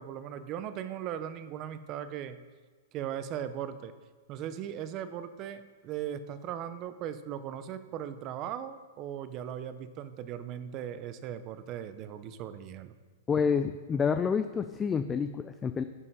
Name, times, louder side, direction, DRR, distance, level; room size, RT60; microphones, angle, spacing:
voice 1, 0.0-2.4 2.9-3.9 4.3-12.9, right 10 dB, 35° right, 12 dB, 0.7 m, -38 dB
voice 2, 13.3-15.8, left 6 dB, 15° left, 9 dB, 0.3 m, -28 dB
9.5 x 5.6 x 5.5 m, 1.4 s
hypercardioid pair, 140°, 0 cm